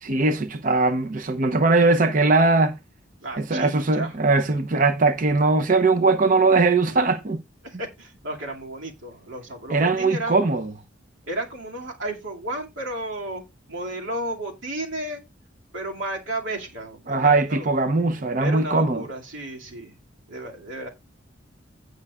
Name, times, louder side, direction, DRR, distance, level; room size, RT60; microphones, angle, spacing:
voice 1, 0.0-2.8 3.4-7.4 9.7-10.7 17.1-19.0, right 3 dB, 45° right, 0.6 m, -20 dB
voice 2, 3.2-4.1 6.9-7.0 7.6-10.4 11.3-13.4 13.7-15.2 15.7-17.7 18.4-19.9 20.3-20.9, right 1 dB, 90° right, 2.3 m, -33 dB
16.5 x 6.2 x 2.4 m
head